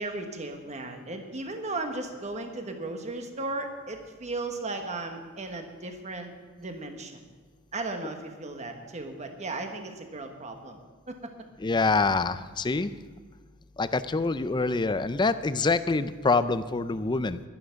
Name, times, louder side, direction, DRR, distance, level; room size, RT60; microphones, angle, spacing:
voice 1, 0.0-6.3 6.6-7.2 7.7-10.8 11.1-11.3, right 2 dB, 30° right, 5 dB, 1.3 m, -36 dB
voice 2, 11.6-12.9 13.8-17.4, left 3 dB, 20° left, 13 dB, 0.4 m, -25 dB
11.5 x 11.5 x 5.8 m, 1.5 s
head